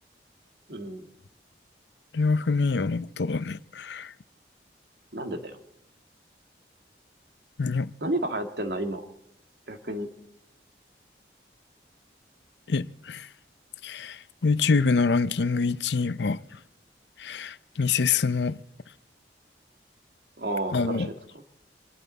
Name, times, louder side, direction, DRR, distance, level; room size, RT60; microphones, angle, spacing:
voice 1, 0.7-1.1 5.1-5.5 8.0-9.1 9.7-10.1 20.4-21.1, right 1 dB, 70° right, 2.0 m, -31 dB
voice 2, 2.1-4.1 7.6-7.9 12.7-13.3 13.8-16.4 17.2-18.6 20.7-21.1, left 4 dB, 75° left, 0.6 m, -25 dB
25.5 x 12.0 x 4.0 m
head